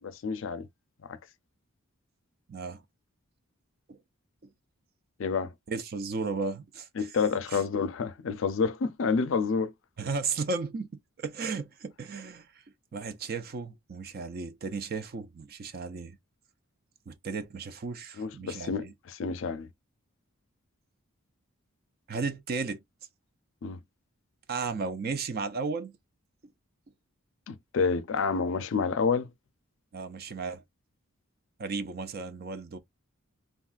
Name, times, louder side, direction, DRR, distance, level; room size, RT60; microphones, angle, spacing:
voice 1, 0.0-0.7 5.2-5.5 7.0-9.7 18.2-19.7 23.6-23.8 27.5-29.3, left 5 dB, 60° left, 0.4 m, -29 dB
voice 2, 2.5-2.8 3.9-4.0 5.7-7.1 7.5-7.6 10.0-10.9 11.2-12.5 12.9-16.2 17.1-18.9 22.1-22.8 24.5-25.9 29.9-30.6 31.6-32.8, right 4 dB, 45° right, 0.4 m, -34 dB
3.5 x 2.3 x 2.4 m
head